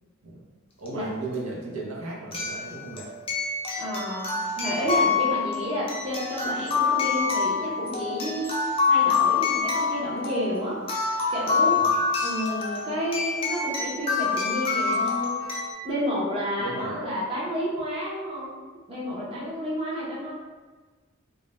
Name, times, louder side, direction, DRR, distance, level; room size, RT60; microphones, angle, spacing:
voice 1, 0.8-3.1 4.8-4.9 11.7-12.0 16.6-17.0, right 3 dB, 75° right, -4 dB, 0.6 m, -36 dB
sound 1, 0.9-1.0 2.3-15.7, left 5 dB, 25° left, 0.4 m, -26 dB
voice 2, 3.8-10.8 11.3-11.9 12.2-15.4 15.8-18.5 18.9-20.3, equal, 25° right, -7 dB, 0.6 m, -30 dB
2.4 x 2.0 x 3.0 m, 1.3 s
head